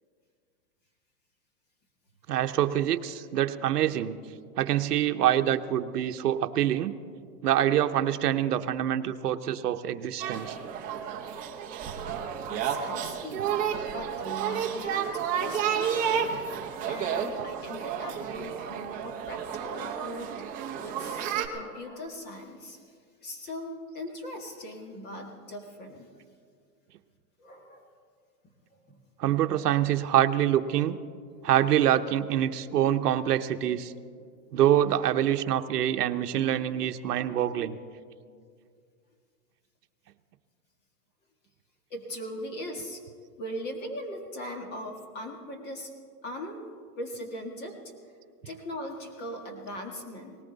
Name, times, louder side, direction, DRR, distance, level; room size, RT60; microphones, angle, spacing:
voice 1, 2.3-4.2 4.6-6.9 7.4-10.6 29.2-31.0 31.4-33.9 34.5-37.8, right 11 dB, 80° right, 8 dB, 0.9 m, -25 dB
sound 1, 10.2-21.5, right 8 dB, 20° right, 0.8 m, -31 dB
voice 2, 12.5-13.5 13.9-16.3 16.8-19.4 19.7-20.3 20.8-22.8 23.2-26.2 27.4-27.9 28.9-29.0 32.8-33.0 41.9-43.0 43.4-45.9 46.2-46.7 47.0-47.8 48.5-50.4, equal, 20° left, 3 dB, 1.7 m, -40 dB
19.0 x 18.0 x 4.0 m, 2.2 s
hypercardioid pair, 155°, 46 cm